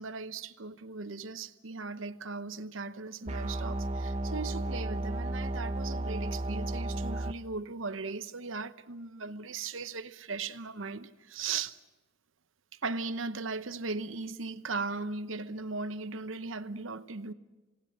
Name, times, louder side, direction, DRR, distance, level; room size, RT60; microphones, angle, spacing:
voice 1, 0.0-11.8 12.8-17.3, right 4 dB, 80° right, 0.9 m, -38 dB
sound 1, 3.3-7.3, right 1 dB, 35° right, 0.7 m, -33 dB
27.5 x 18.0 x 7.5 m
head